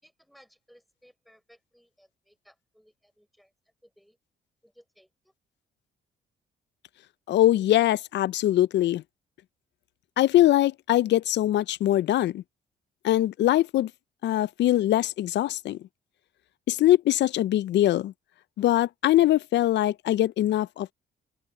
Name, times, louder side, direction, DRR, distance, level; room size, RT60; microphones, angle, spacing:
voice 1, 0.0-3.5 3.8-4.2 4.6-5.3, equal, ahead, 5.2 m, -60 dB
voice 2, 7.3-9.0 10.2-12.4 13.0-13.9 14.2-15.8 16.7-18.1 18.6-20.9, left 14 dB, 65° left, 0.4 m, -22 dB
open air
cardioid pair, 90°, 20 cm